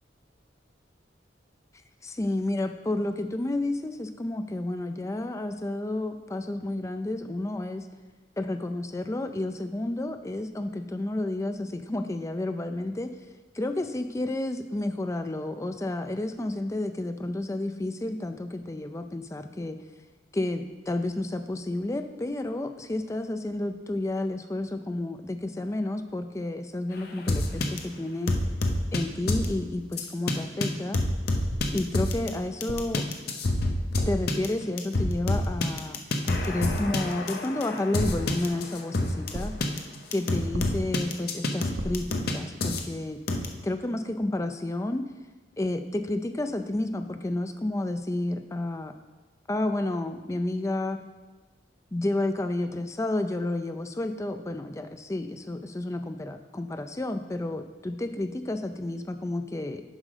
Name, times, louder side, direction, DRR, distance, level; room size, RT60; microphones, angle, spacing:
voice 1, 2.0-7.8 8.4-13.1 13.5-19.8 20.3-28.3 28.9-31.0 31.7-33.0 34.1-36.0 36.3-39.5 40.1-43.2 43.6-45.0 45.6-48.9 49.5-51.0 51.9-59.8, left 1 dB, 15° left, 8 dB, 0.4 m, -31 dB
sound 1, 27.3-27.8 28.3-29.0 29.3-29.5 30.0-30.3 30.6-30.7 30.9-32.3 32.6-39.3 39.6-39.8 40.1-42.3 42.6-42.8 43.3-43.5, left 2 dB, 55° left, 0.7 m, -27 dB
sound 2, 31.5-32.0 32.7-33.1 33.9-34.3 35.3-35.7 36.6-37.0 38.0-38.6 39.3-39.8 40.5-41.1 41.8-42.2, right 1 dB, 80° right, 0.9 m, -36 dB
7.4 x 5.1 x 4.9 m, 1.2 s
head